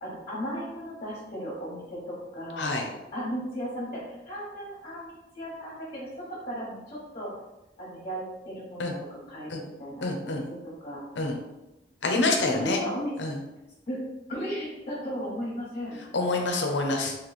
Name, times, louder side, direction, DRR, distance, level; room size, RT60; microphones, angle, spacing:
voice 1, 0.0-2.7 3.1-7.3 7.8-11.0 12.5-13.1 13.9-14.0 14.3-16.2, equal, 40° left, -6 dB, 1.1 m, -36 dB
voice 2, 10.0-10.4 11.2-11.4 12.0-12.8 13.2-13.4 16.1-17.2, left 2 dB, 80° left, 3 dB, 0.7 m, -26 dB
3.0 x 2.9 x 4.1 m, 0.99 s
head